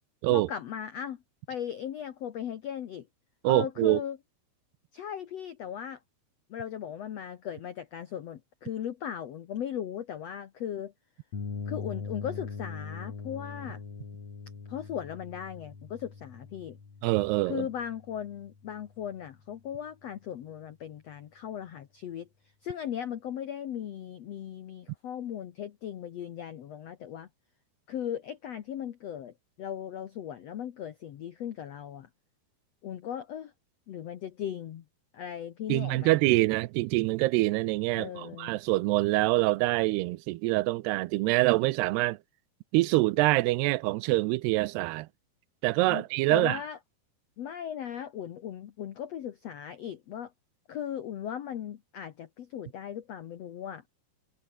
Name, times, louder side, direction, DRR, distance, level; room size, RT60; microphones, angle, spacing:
voice 1, 0.3-1.2 1.5-3.1 3.4-4.2 4.9-6.0 6.5-10.9 11.7-13.8 14.7-16.8 17.4-22.3 22.6-27.3 27.9-32.1 32.8-33.5 33.9-34.8 35.1-36.2 37.9-38.6 45.9-46.0 46.3-46.8 47.4-50.3 50.7-53.8, left 9 dB, 80° left, 1.5 m, -37 dB
voice 2, 3.4-4.0 17.0-17.7 35.7-42.2 42.7-45.1 45.6-46.6, right 20 dB, 85° right, 2.7 m, -25 dB
sound 1, 11.3-19.1, left 5 dB, 40° left, 5.2 m, -41 dB
omnidirectional pair, 4.7 m